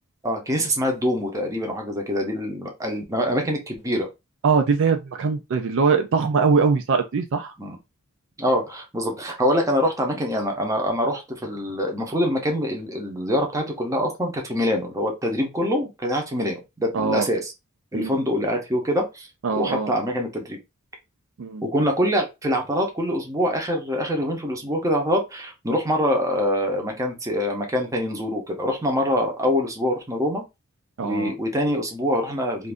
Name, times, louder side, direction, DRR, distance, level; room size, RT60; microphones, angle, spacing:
voice 1, 0.2-4.1 7.6-7.8 8.4-17.5 17.9-19.3 19.5-20.6 21.6-30.4 31.0-32.7, equal, 15° right, 0.7 m, -24 dB
voice 2, 4.4-7.5 16.9-17.3 17.9-18.1 19.4-19.9 21.4-21.6 31.0-31.3, right 5 dB, 60° right, 0.4 m, -22 dB
2.6 x 2.5 x 3.4 m
head